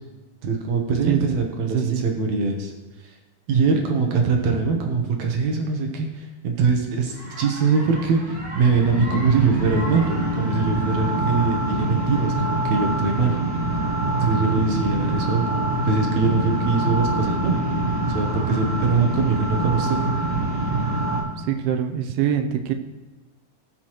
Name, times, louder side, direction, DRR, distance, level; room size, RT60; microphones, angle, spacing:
voice 1, 0.4-2.7 3.5-13.4 14.1-17.7 18.1-20.1, right 4 dB, 65° right, 2 dB, 1.8 m, -23 dB
voice 2, 1.1-1.4 1.7-2.0 21.5-22.7, right 9 dB, 90° right, 6 dB, 2.6 m, -24 dB
sound 1, 7.2-21.2, right 2 dB, 35° right, 2.1 m, -25 dB
18.5 x 6.3 x 3.0 m, 1.1 s
omnidirectional pair, 4.4 m